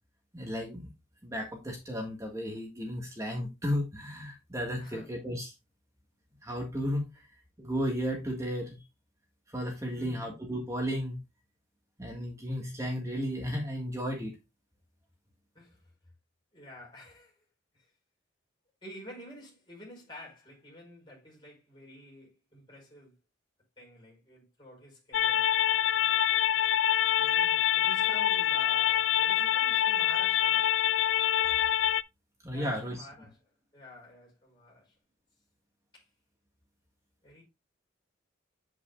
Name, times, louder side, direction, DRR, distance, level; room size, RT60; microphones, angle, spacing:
voice 1, 0.3-0.9 1.2-5.5 6.4-7.2 7.6-8.8 9.5-11.2 12.0-14.3 32.4-33.0, equal, 15° right, 1.7 m, -34 dB
voice 2, 4.8-5.1 9.9-10.3 15.5-15.8 16.5-17.5 17.7-17.9 18.8-23.2 23.8-25.5 27.2-30.8 32.5-33.4 33.7-34.9 35.9-36.1 37.2-37.4, left 1 dB, 25° left, 4.7 m, -50 dB
sound 1, 25.1-32.0, left 11 dB, 70° left, 0.3 m, -26 dB
8.1 x 8.0 x 2.4 m
head